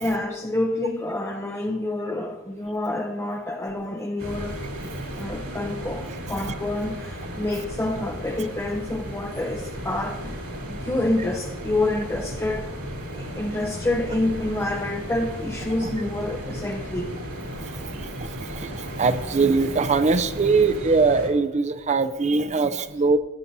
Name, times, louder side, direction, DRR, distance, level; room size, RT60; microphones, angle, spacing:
voice 1, 0.0-4.6 5.1-10.3 10.7-12.7 13.1-17.2, left 1 dB, 10° left, 0.5 m, -28 dB
sound 1, 4.2-21.3, equal, 65° right, 3.1 m, -35 dB
voice 2, 17.8-23.2, right 4 dB, 35° right, 0.5 m, -22 dB
14.5 x 9.7 x 2.7 m
head